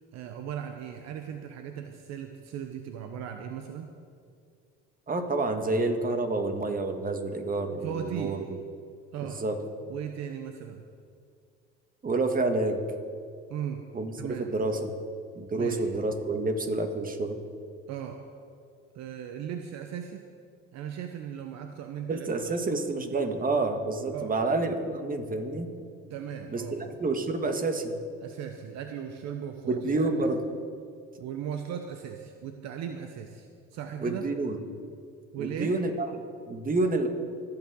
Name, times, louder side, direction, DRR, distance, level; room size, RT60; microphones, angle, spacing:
voice 1, 0.1-3.9 7.7-8.4 9.1-9.4 9.9-10.8 13.5-13.8 14.2-14.4 15.5-15.8 17.9-18.2 18.9-20.2 20.7-22.9 24.1-24.3 26.1-26.9 28.2-30.1 31.2-34.2 35.3-35.8, right 8 dB, 60° right, 5 dB, 1.0 m, -37 dB
voice 2, 5.1-8.6 9.2-9.6 12.0-12.8 13.9-14.1 14.4-14.9 15.4-17.4 22.1-25.7 26.5-28.0 29.7-30.4 34.0-34.6 35.4-36.1 36.5-37.1, right 2 dB, 30° right, 6 dB, 1.8 m, -28 dB
25.5 x 9.0 x 3.9 m, 2.2 s
supercardioid pair, 80°, 30 cm